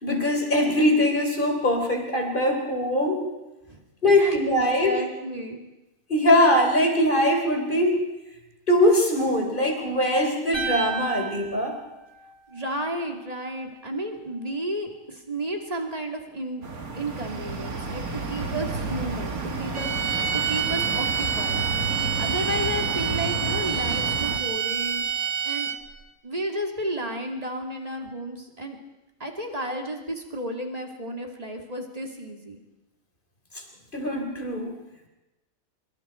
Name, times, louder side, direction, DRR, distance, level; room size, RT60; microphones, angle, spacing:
voice 1, 0.0-3.2 4.0-4.9 6.1-8.0 8.7-11.8 33.5-33.6 33.9-34.8, left 1 dB, 35° left, 3 dB, 3.9 m, -22 dB
voice 2, 4.2-5.6 12.5-16.7 16.9-19.9 20.3-25.7 26.2-28.8 29.2-32.6, right 1 dB, 25° right, 2 dB, 2.8 m, -33 dB
sound 1, 10.5-12.8, right 6 dB, 65° left, 7.6 m, -33 dB
sound 2, 16.6-24.4, right 3 dB, 80° right, 2.5 m, -31 dB
sound 3, 19.7-26.0, right 7 dB, 60° right, 1.4 m, -27 dB
25.0 x 24.5 x 4.6 m, 1.0 s
omnidirectional pair, 1.5 m